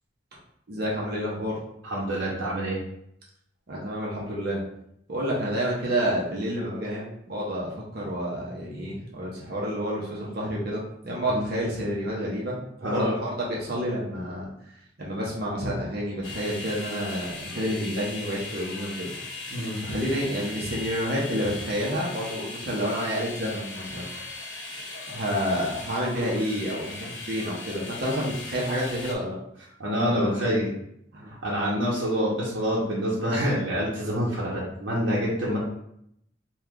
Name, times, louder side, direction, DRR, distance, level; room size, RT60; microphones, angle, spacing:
voice 1, 0.7-1.6 3.7-4.6 5.1-14.5 15.0-19.1 19.8-24.1 24.7-24.8 25.1-29.4 30.1-30.4 31.1-31.3, equal, 55° right, -4 dB, 0.8 m, -29 dB
voice 2, 1.8-2.8 11.3-11.4 12.8-13.2 19.5-19.8 29.8-30.7 31.2-35.6, equal, 85° right, -6 dB, 0.9 m, -26 dB
sound 1, 16.2-29.1, left 3 dB, 90° left, 0.8 m, -38 dB
3.0 x 2.3 x 3.6 m, 0.74 s
head